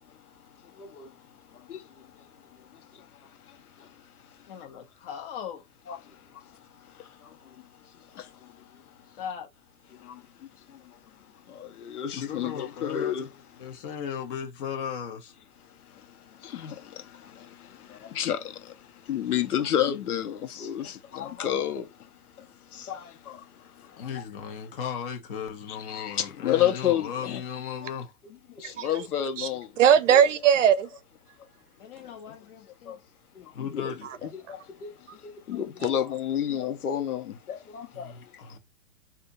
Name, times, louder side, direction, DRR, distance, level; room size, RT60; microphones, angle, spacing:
voice 1, 0.6-1.2 1.5-4.4 5.9-8.8 9.9-11.0 11.5-13.3 13.7-13.8 15.8-24.1 25.7-27.4 28.5-29.7 30.1-30.2 32.0-32.4 32.8-33.0 33.3-33.9 34.2-38.6, left 10 dB, 75° left, 1.2 m, -32 dB
voice 2, 4.5-5.6 9.2-9.5 12.1-13.1 13.6-15.3 24.0-28.1 31.8-33.0 33.5-34.1 37.9-38.6, left 7 dB, 35° left, 1.2 m, -36 dB
voice 3, 29.8-30.9, right 9 dB, 55° right, 0.6 m, -19 dB
3.4 x 2.6 x 2.7 m
hypercardioid pair, 145°, 45 cm